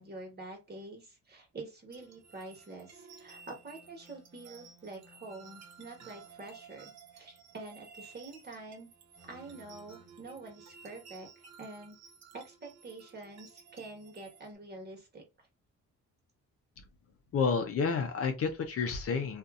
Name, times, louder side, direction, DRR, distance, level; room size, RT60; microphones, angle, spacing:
voice 1, 0.0-8.9 9.2-12.0 12.3-15.2, right 2 dB, 35° right, 1.4 m, -47 dB
sound 1, 1.9-14.6, right 5 dB, 60° right, 0.9 m, -55 dB
voice 2, 17.3-19.4, left 5 dB, 50° left, 0.6 m, -30 dB
2.6 x 2.5 x 2.4 m
cardioid pair, 90°, 30 cm